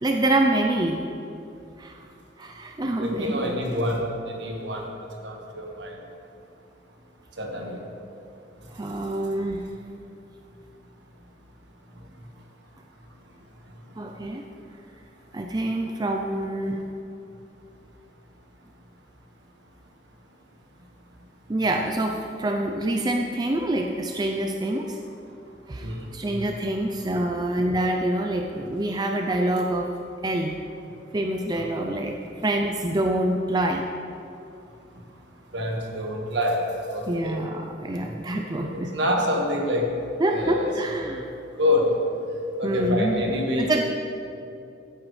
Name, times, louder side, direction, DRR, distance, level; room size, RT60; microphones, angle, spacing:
voice 1, 0.0-1.0 1.8-2.0 2.4-3.5 8.7-9.6 14.0-14.5 15.3-16.8 21.5-25.0 25.7-29.9 30.2-30.5 31.1-33.8 37.1-38.9 40.2-41.3 42.6-43.2 43.6-43.8, right 1 dB, 20° right, 3 dB, 0.4 m, -26 dB
voice 2, 3.0-4.9 5.2-6.0 7.4-7.8 25.8-26.0 26.3-26.4 31.5-31.7 35.5-37.3 38.5-39.9 40.3-40.8 41.6-42.0 42.6-43.7, left 1 dB, 70° right, 1 dB, 1.6 m, -26 dB
16.0 x 9.0 x 3.2 m, 2.7 s
head